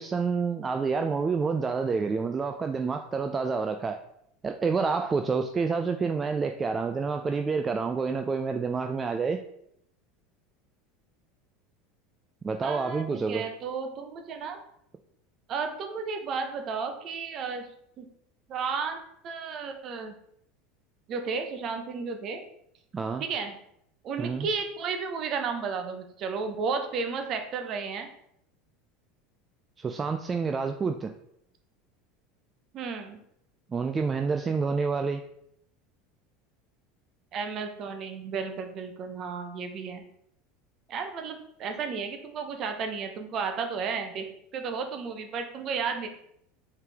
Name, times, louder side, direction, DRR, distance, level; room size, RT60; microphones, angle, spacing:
voice 1, 0.0-4.0 4.4-9.4 12.4-13.4 22.9-23.2 24.2-24.5 29.8-31.1 33.7-35.2, right 5 dB, 25° right, 6 dB, 0.3 m, -28 dB
voice 2, 12.6-14.6 15.5-17.7 18.0-18.1 18.5-19.0 19.2-20.1 21.1-22.4 23.2-23.6 24.0-28.1 32.7-33.2 37.3-40.0 40.9-44.3 44.5-46.1, right 5 dB, 45° right, 5 dB, 0.7 m, -33 dB
4.6 x 3.3 x 3.4 m, 0.73 s
hypercardioid pair, 100°, 0 cm